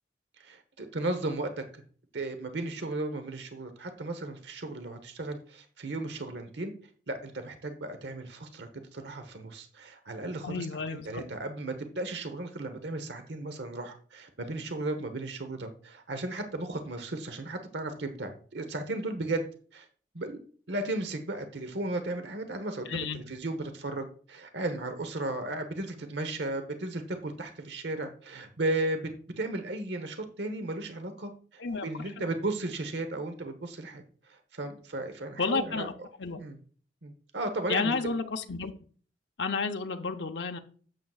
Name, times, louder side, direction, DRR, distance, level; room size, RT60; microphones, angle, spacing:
voice 1, 0.4-1.8 2.1-6.7 7.1-19.5 19.7-19.9 20.1-20.4 20.7-29.1 29.4-35.9 36.3-36.6 37.0-37.9, right 2 dB, 70° right, 8 dB, 1.0 m, -35 dB
voice 2, 10.4-11.2 22.9-23.2 31.6-31.9 35.4-35.9 36.2-36.4 37.7-38.7 39.4-40.6, left 4 dB, 70° left, 5 dB, 0.7 m, -31 dB
11.5 x 7.7 x 2.4 m, 0.43 s
head